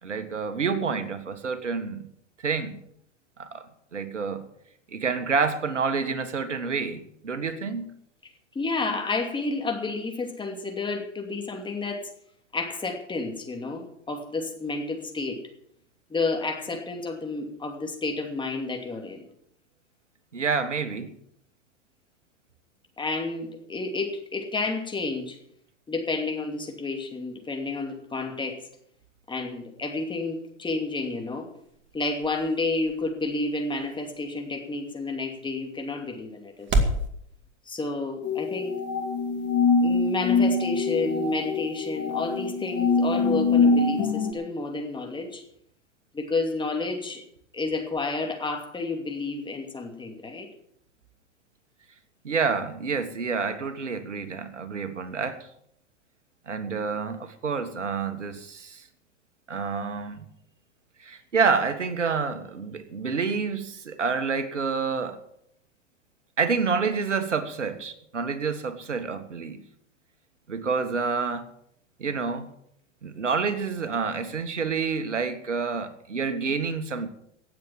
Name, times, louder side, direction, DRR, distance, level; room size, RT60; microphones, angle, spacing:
voice 1, 0.0-2.1 2.4-2.8 3.4-3.7 3.9-4.5 4.9-7.9 20.3-21.1 52.2-55.5 56.5-58.9 59.5-60.3 61.0-65.2 66.4-69.6 70.5-71.5 72.0-72.5 73.0-77.1, right 5 dB, 90° right, 1.6 m, -28 dB
voice 2, 8.5-12.1 12.5-15.4 16.1-19.2 23.0-25.4 25.9-28.6 29.3-31.5 31.9-36.9 37.7-38.8 39.8-45.4 46.1-47.2 47.5-50.5, left 3 dB, 15° left, 2.6 m, -30 dB
sound 1, 30.8-37.1, right 2 dB, 35° right, 2.3 m, -33 dB
sound 2, 38.2-44.3, left 4 dB, 30° left, 2.9 m, -24 dB
17.5 x 7.6 x 7.3 m
hypercardioid pair, 105°, 35 cm